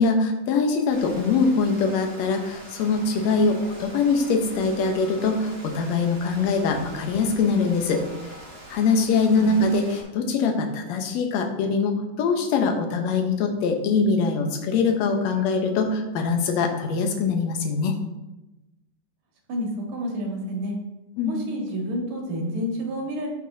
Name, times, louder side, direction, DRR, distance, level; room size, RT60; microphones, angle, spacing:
voice 1, 0.0-8.0 8.7-17.9 21.2-21.4, left 4 dB, 65° left, 3 dB, 1.9 m, -23 dB
Rain, 0.9-10.0, right 1 dB, 25° right, 3.0 m, -43 dB
voice 2, 19.5-20.8 21.3-23.3, equal, 70° right, -1 dB, 3.1 m, -29 dB
14.0 x 4.7 x 2.8 m, 0.99 s
omnidirectional pair, 3.8 m